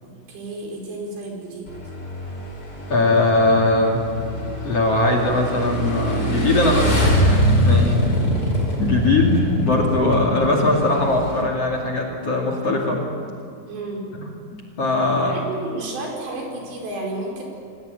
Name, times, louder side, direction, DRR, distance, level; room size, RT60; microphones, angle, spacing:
voice 1, 0.0-1.7 13.7-14.1 15.2-17.4, right 2 dB, 75° right, 0 dB, 6.9 m, -32 dB
Motorcycle / Engine, 1.7-11.4, equal, 20° left, 5.1 m, -23 dB
voice 2, 2.9-4.0 4.6-7.9 8.8-13.0 14.2-15.4, left 2 dB, 40° left, 1 dB, 2.9 m, -20 dB
27.0 x 17.0 x 9.5 m, 2.3 s
omnidirectional pair, 5.0 m